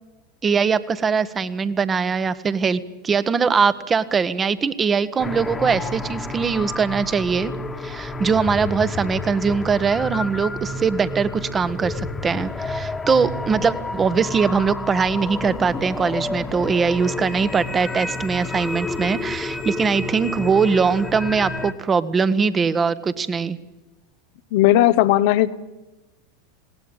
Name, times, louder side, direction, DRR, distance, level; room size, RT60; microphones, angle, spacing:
voice 1, 0.4-7.5 7.8-23.6, right 5 dB, 25° right, 15 dB, 1.2 m, -21 dB
sound 1, 5.2-21.7, left 2 dB, 15° left, 1.5 m, -30 dB
voice 2, 24.5-25.6, left 14 dB, 55° left, 12 dB, 0.9 m, -16 dB
20.0 x 18.0 x 8.9 m, 1.1 s
figure-of-eight pair, 85°, 0 cm